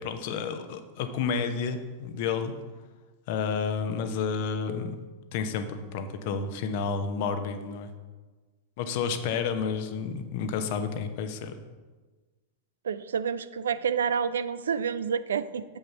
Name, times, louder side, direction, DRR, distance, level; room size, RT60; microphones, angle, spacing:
voice 1, 0.0-2.6 3.3-5.0 5.3-7.9 8.8-11.6, left 5 dB, 50° left, 8 dB, 0.8 m, -30 dB
voice 2, 12.8-15.6, right 7 dB, 65° right, 13 dB, 0.3 m, -28 dB
7.6 x 5.6 x 5.9 m, 1.3 s
figure-of-eight pair, 90°, 0 cm